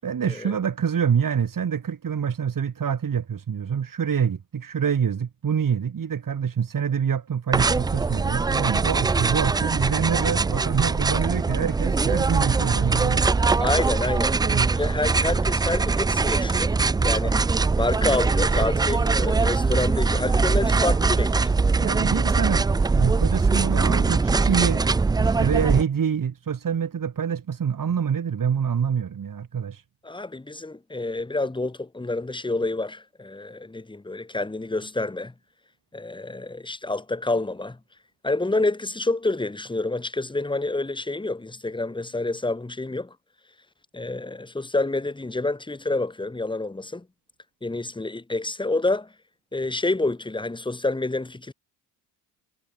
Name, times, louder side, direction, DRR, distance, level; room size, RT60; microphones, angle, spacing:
voice 1, 0.0-13.3 14.4-14.7 21.8-22.7 22.9-24.9 25.2-29.8, right 7 dB, 45° right, 7.9 m, -26 dB
sound 1, 7.5-25.8, right 4 dB, 10° right, 0.4 m, -22 dB
voice 2, 13.6-14.4 14.7-16.7 17.0-17.5 17.8-21.5 30.0-35.3 35.9-37.8 38.2-43.1 43.9-47.1 47.6-49.1 49.5-51.5, left 2 dB, 10° left, 2.0 m, -28 dB
hypercardioid pair, 55°, 47 cm